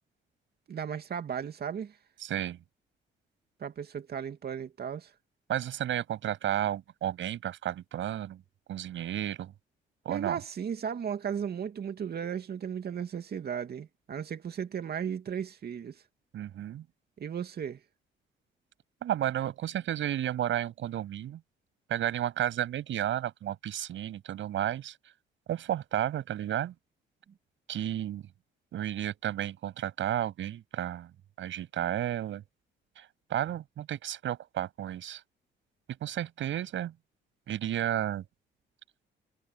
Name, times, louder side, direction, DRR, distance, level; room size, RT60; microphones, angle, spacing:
voice 1, 0.7-2.0 3.6-5.1 10.1-16.0 17.2-17.8, right 8 dB, 55° right, 2.5 m, -35 dB
voice 2, 2.2-2.6 5.5-8.4 8.7-9.5 10.0-10.4 16.3-16.8 19.0-21.4 21.9-25.0 25.5-26.7 27.7-28.3 28.7-31.1 31.4-32.4 33.0-35.2 35.9-36.9 37.5-38.2, right 11 dB, 75° right, 7.5 m, -32 dB
cardioid pair, 90°, 20 cm